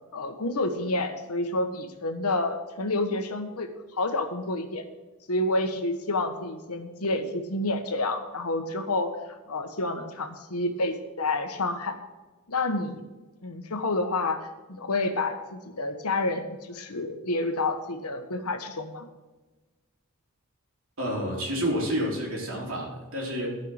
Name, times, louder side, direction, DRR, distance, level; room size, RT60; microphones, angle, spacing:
voice 1, 0.1-4.8 5.3-12.0 12.5-13.0 13.4-19.1, left 2 dB, 85° left, 6 dB, 1.3 m, -29 dB
voice 2, 21.0-23.6, equal, 65° right, -3 dB, 3.6 m, -29 dB
12.5 x 5.8 x 6.4 m, 1.2 s
head